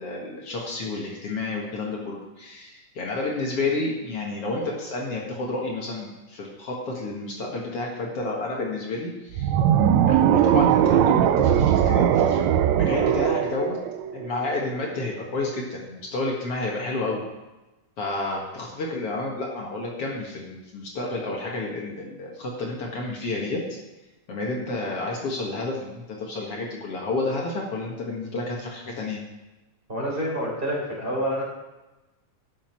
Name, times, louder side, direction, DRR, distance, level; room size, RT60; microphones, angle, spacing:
voice 1, 0.0-9.5 10.1-13.8 14.1-17.2 18.0-23.8 24.3-29.2, left 2 dB, 50° left, -2 dB, 2.5 m, -30 dB
sound 1, 9.3-14.6, right 10 dB, 75° right, 1.6 m, -20 dB
voice 2, 29.9-31.4, equal, 15° right, -3 dB, 4.1 m, -27 dB
13.0 x 9.8 x 4.6 m, 1.1 s
omnidirectional pair, 3.7 m